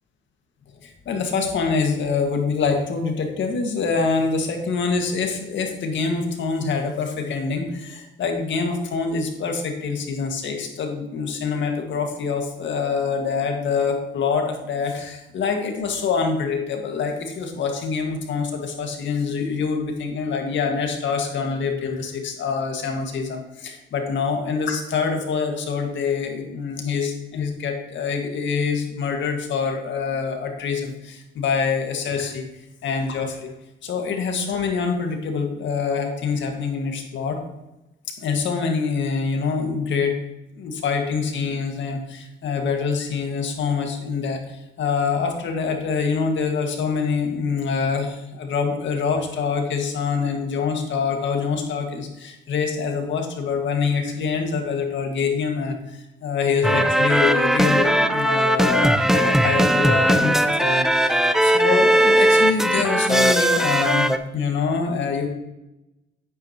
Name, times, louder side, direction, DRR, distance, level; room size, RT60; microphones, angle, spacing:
voice 1, 0.8-32.5 32.8-33.5 33.8-37.4 38.1-40.2 40.6-55.8 56.2-60.3 60.6-65.3, left 5 dB, 70° left, 3 dB, 1.9 m, -25 dB
sound 1, 56.6-64.2, right 1 dB, ahead, 0.6 m, -18 dB
9.7 x 9.0 x 3.0 m, 0.95 s
cardioid pair, 90°, 20 cm